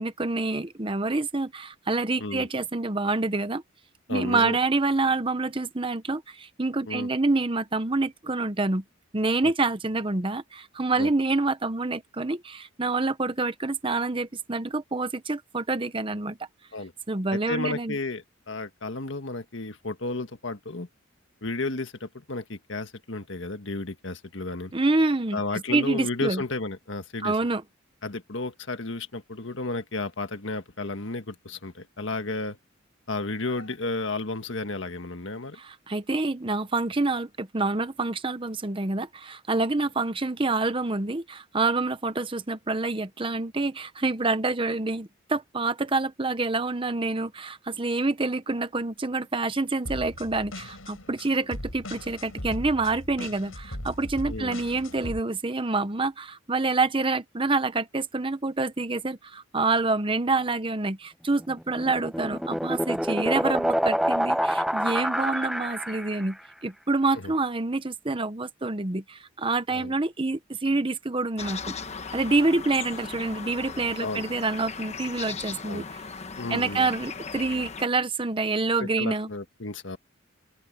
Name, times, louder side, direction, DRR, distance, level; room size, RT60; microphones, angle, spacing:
voice 1, 0.0-3.6 4.1-8.8 9.1-16.4 17.1-18.0 24.7-26.4 27.2-27.6 35.6-66.4 66.6-71.7 72.1-75.8 76.5-79.3, right 3 dB, 25° right, 0.9 m, -27 dB
voice 2, 4.1-4.6 6.9-7.1 9.4-9.5 11.0-11.1 16.7-16.9 17.3-20.9 21.4-24.7 25.3-27.4 28.0-32.6 33.1-35.6 54.3-54.5 67.2-67.3 69.7-69.9 74.0-74.2 75.6-75.9 76.3-76.9 78.8-80.0, left 2 dB, 60° left, 1.7 m, -33 dB
sound 1, 49.8-55.2, left 1 dB, 85° left, 5.6 m, -38 dB
sound 2, 61.5-66.3, equal, ahead, 0.7 m, -27 dB
sound 3, 71.4-77.9, left 5 dB, 35° left, 1.1 m, -38 dB
open air
head